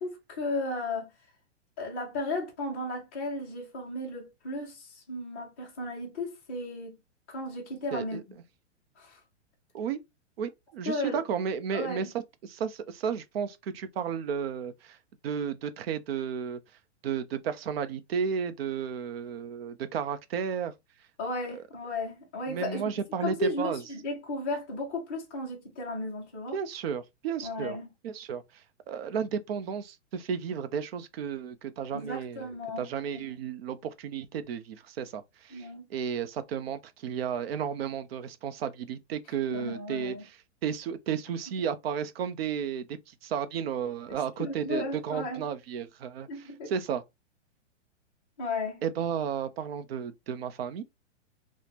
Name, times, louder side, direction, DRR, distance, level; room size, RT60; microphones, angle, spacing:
voice 1, 0.0-1.1 1.8-7.0 7.3-8.2 9.0-9.2 10.8-11.2 11.7-12.1 21.2-22.9 23.2-26.6 27.4-27.9 31.9-33.4 35.5-35.9 39.5-40.3 44.4-45.5 46.3-46.7 48.4-48.8, left 2 dB, 10° left, 0.3 m, -35 dB
voice 2, 10.4-12.1 12.4-15.0 15.2-16.6 17.0-20.7 22.5-23.8 26.5-27.8 28.0-28.4 28.9-32.5 32.8-40.2 40.6-46.3 46.7-47.0 48.8-50.8, right 7 dB, 55° right, 0.5 m, -33 dB
3.3 x 2.0 x 2.8 m
hypercardioid pair, 160°, 36 cm